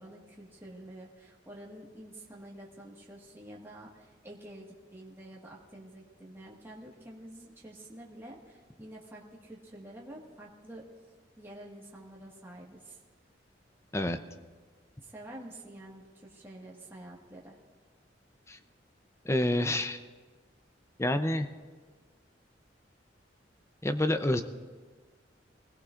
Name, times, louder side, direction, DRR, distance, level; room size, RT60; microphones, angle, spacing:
voice 1, 0.0-10.8 11.4-13.0 15.0-17.6, right 1 dB, 15° right, -3 dB, 1.6 m, -48 dB
voice 2, 19.2-20.0 21.0-21.5 23.8-24.4, left 1 dB, 15° left, 9 dB, 0.6 m, -28 dB
24.5 x 16.5 x 2.5 m, 1.5 s
head